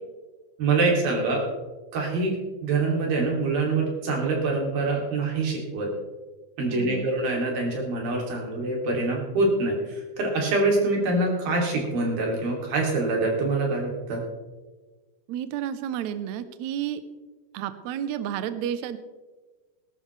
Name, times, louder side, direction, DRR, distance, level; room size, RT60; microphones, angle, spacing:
voice 1, 0.6-1.4 1.9-2.3 2.6-5.9 6.6-14.2, right 3 dB, 70° right, -1 dB, 4.7 m, -25 dB
voice 2, 6.7-7.1 15.3-17.0 17.5-19.0, right 10 dB, 90° right, 11 dB, 1.6 m, -31 dB
20.0 x 12.0 x 3.3 m, 1.3 s
omnidirectional pair, 4.3 m